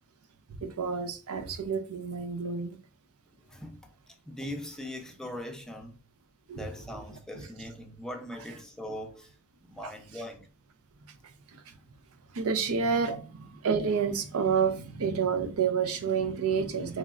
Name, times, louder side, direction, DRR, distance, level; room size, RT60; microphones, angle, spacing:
voice 1, 0.6-2.8 6.5-7.0 11.5-11.6 12.3-13.2 13.6-17.0, right 6 dB, 75° right, 0.5 m, -29 dB
voice 2, 4.3-6.0 6.5-9.3 9.6-10.5, left 1 dB, 5° left, 0.5 m, -40 dB
3.8 x 3.1 x 2.4 m
head